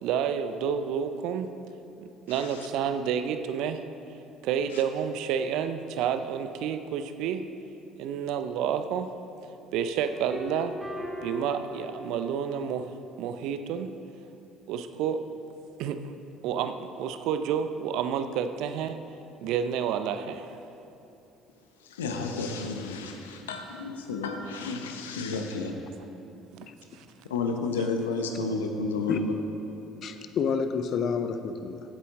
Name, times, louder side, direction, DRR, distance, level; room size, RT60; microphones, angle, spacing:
voice 1, 0.0-1.5 2.3-3.8 4.4-7.4 8.0-9.1 9.7-10.7 11.2-12.9 13.2-13.9 14.7-15.2 15.8-16.0 16.4-19.0 19.4-20.5 25.3-25.5 26.5-26.7 27.0-27.1, right 8 dB, 65° right, 9 dB, 0.6 m, -29 dB
sound 1, 10.0-12.9, left 1 dB, 10° right, 1.8 m, -40 dB
voice 2, 21.9-25.7 27.3-29.3, left 3 dB, 80° left, 4 dB, 1.0 m, -31 dB
voice 3, 30.0-31.8, left 6 dB, 50° left, 9 dB, 0.7 m, -29 dB
15.5 x 8.3 x 3.8 m, 2.8 s
hypercardioid pair, 60°, 0 cm